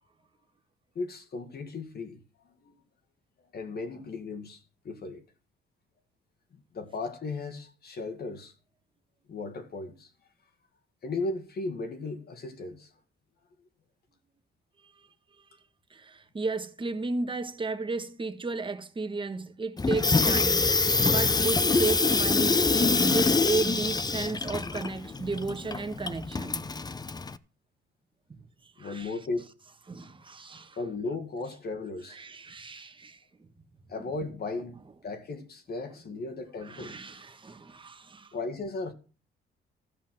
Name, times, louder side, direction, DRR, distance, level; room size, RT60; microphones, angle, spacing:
voice 1, 1.0-2.7 3.5-5.2 6.5-8.5 9.3-10.1 11.0-12.9 28.8-29.5 30.8-32.2 33.9-37.0 38.3-38.9, left 3 dB, 55° left, 1.9 m, -36 dB
voice 2, 15.9-26.7 28.3-28.4 28.8-29.1 29.9-30.8 32.1-33.2 36.1-36.2 36.6-38.3, right 3 dB, 25° right, 1.4 m, -34 dB
Water tap faucet / Sink (filling or washing), 19.8-27.4, left 3 dB, 20° left, 0.7 m, -25 dB
13.5 x 5.7 x 7.7 m
cardioid pair, 90°, 20 cm